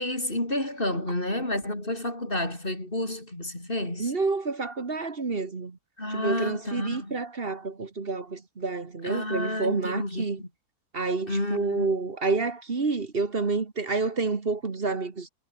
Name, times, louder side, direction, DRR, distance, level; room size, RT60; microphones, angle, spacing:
voice 1, 0.0-4.1 6.0-7.2 9.0-10.5 11.3-11.9, left 1 dB, 25° left, 6.0 m, -30 dB
voice 2, 4.0-5.8 6.1-10.4 10.9-15.3, right 4 dB, 30° right, 1.6 m, -29 dB
omnidirectional pair, 2.1 m